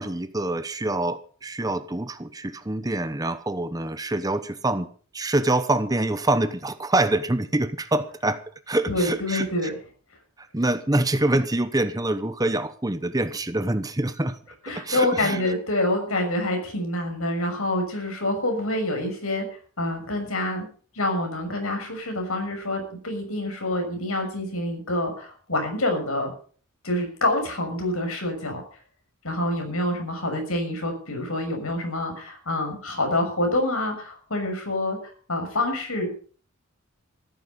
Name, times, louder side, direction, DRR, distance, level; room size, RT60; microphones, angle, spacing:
voice 1, 0.0-4.9 5.1-9.7 10.4-14.4 14.8-15.5, right 2 dB, 15° right, 11 dB, 0.9 m, -25 dB
voice 2, 8.9-9.7 14.6-19.5 19.8-20.7 20.9-26.3 26.8-28.6 29.2-35.0 35.3-36.1, left 1 dB, 70° left, 4 dB, 6.5 m, -26 dB
15.0 x 14.0 x 5.4 m, 0.44 s
head